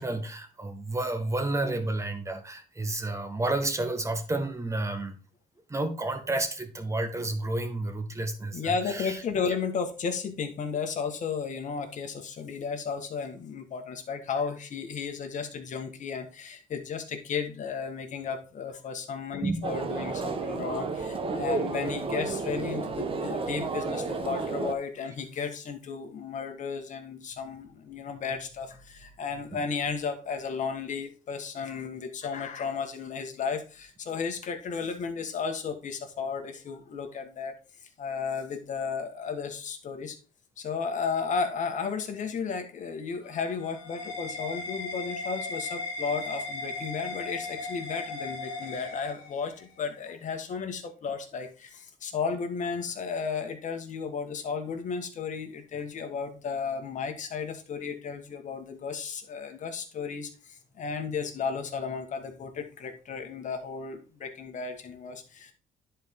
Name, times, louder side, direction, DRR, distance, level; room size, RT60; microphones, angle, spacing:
voice 1, 0.0-5.2 5.7-9.2 19.4-19.6, right 2 dB, 15° right, 7 dB, 1.3 m, -31 dB
voice 2, 8.5-37.6 38.0-40.2 40.6-65.5, left 5 dB, 45° left, 5 dB, 1.5 m, -34 dB
sound 1, 19.6-24.7, right 4 dB, 30° right, 1.0 m, -32 dB
sound 2, 43.1-49.6, left 2 dB, 90° left, 1.6 m, -37 dB
10.5 x 4.5 x 3.6 m, 0.34 s
cardioid pair, 110°, 17 cm